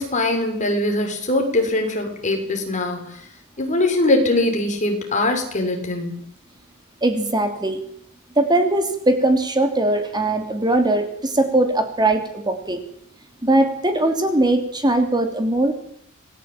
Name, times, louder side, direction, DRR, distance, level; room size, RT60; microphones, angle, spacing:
voice 1, 0.0-3.2 3.6-6.2, left 2 dB, 35° left, 3 dB, 6.6 m, -22 dB
voice 2, 7.0-7.8 8.4-12.8 13.4-15.8, right 2 dB, 20° right, 6 dB, 3.1 m, -20 dB
28.0 x 20.5 x 9.1 m, 0.67 s
head